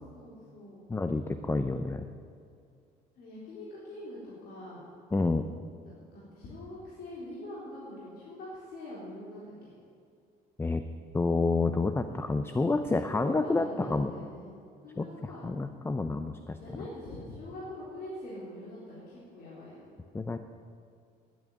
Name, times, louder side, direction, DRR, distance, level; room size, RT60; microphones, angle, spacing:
voice 1, 0.0-0.8 3.2-4.8 6.1-9.7 12.5-14.5 14.8-15.4 16.6-19.8, left 1 dB, 70° left, -8 dB, 3.9 m, -44 dB
voice 2, 0.9-2.1 5.1-5.4 10.6-10.8 11.1-14.1 15.0-15.1 15.4-16.6 20.1-20.4, left 3 dB, 15° left, 9 dB, 0.6 m, -28 dB
11.0 x 9.3 x 9.5 m, 2.3 s
cardioid pair, 110°, 17 cm